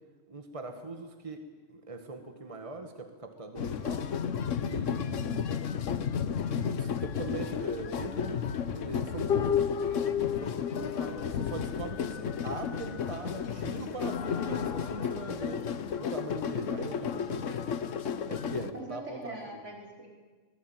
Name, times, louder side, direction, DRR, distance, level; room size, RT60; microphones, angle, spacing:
voice 1, 0.3-1.4 1.7-4.1 4.6-5.3 6.6-9.7 10.0-15.6 16.0-17.6 18.3-19.4, right 2 dB, 25° right, 6 dB, 1.8 m, -41 dB
prospect park drum circle, 3.6-18.7, left 7 dB, 85° left, 1.3 m, -33 dB
voice 2, 5.2-5.6 18.7-20.1, right 2 dB, 75° right, -1 dB, 5.7 m, -43 dB
sound 1, 8.0-13.4 14.0-16.4 17.4-17.5, left 8 dB, 55° left, 1.0 m, -35 dB
24.5 x 19.5 x 9.1 m, 1.4 s
omnidirectional pair, 1.3 m